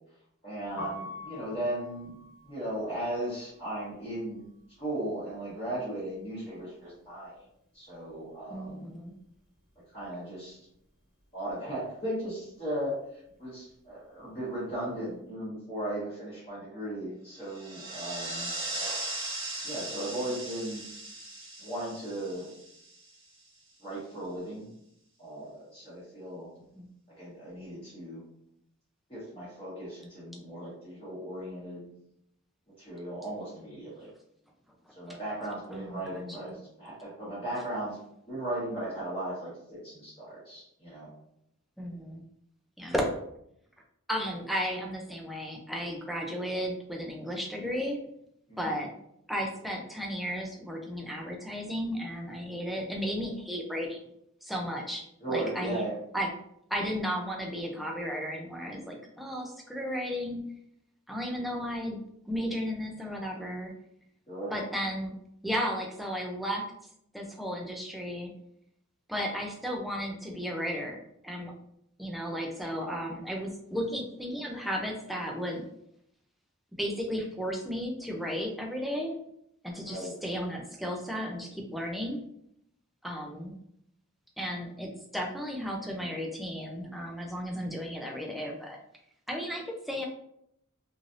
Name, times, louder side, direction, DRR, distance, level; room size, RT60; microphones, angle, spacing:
voice 1, 0.4-2.2 2.4-4.5 4.8-7.4 7.7-8.9 9.9-10.6 11.3-13.0 13.4-18.5 19.6-20.8 21.6-22.5 23.8-24.7 25.2-26.5 27.2-28.2 29.1-31.9 32.8-34.1 34.9-36.5 36.8-38.0 38.3-41.1 48.5-48.8 55.2-55.9 61.3-61.5 64.3-64.5 79.8-80.1, right 1 dB, 25° left, -11 dB, 1.2 m, -36 dB
Piano, 0.6-6.6 6.8-8.4 8.7-15.1, left 2 dB, 60° left, 1.3 m, -48 dB
voice 2, 8.5-9.1 26.8-26.9 35.7-36.6 41.8-42.2 42.8-43.1 44.1-48.0 48.6-48.9 49.3-54.0 54.4-55.8 56.1-56.3 56.7-60.4 61.1-62.0 62.3-63.7 64.5-65.2 65.4-66.7 67.1-68.3 69.1-71.5 72.0-75.6 76.8-79.1 79.6-82.2 83.0-83.5 84.4-88.8 89.3-90.1, equal, ahead, 0 dB, 0.4 m, -34 dB
sound 1, 17.4-23.3, right 2 dB, 60° right, 1.1 m, -38 dB
3.2 x 2.6 x 2.5 m, 0.74 s
head